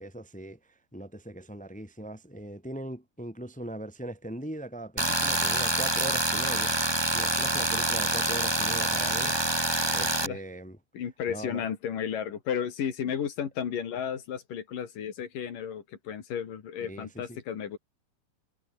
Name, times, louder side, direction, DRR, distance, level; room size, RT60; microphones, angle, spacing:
voice 1, 0.0-6.7 7.1-9.4 9.9-10.8 11.3-11.7 16.8-17.4, right 1 dB, ahead, 2.9 m, -40 dB
Tools, 5.0-10.3, right 2 dB, 15° right, 1.1 m, -26 dB
voice 2, 10.9-17.8, left 8 dB, 75° left, 4.4 m, -33 dB
omnidirectional pair, 3.9 m